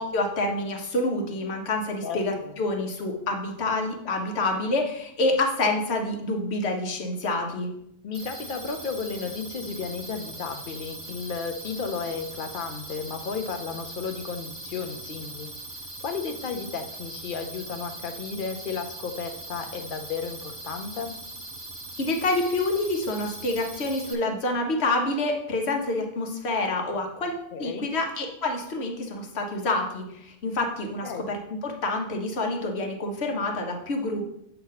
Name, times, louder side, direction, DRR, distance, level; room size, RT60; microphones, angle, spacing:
voice 1, 0.0-7.7 22.0-34.3, left 2 dB, 75° left, 2 dB, 1.3 m, -27 dB
voice 2, 2.0-2.6 8.0-21.2 27.5-27.9 31.0-31.3, left 5 dB, 55° left, 6 dB, 0.8 m, -34 dB
sound 1, 8.1-24.1, right 2 dB, 25° right, 0.9 m, -40 dB
7.8 x 2.9 x 5.6 m, 0.76 s
omnidirectional pair, 1.1 m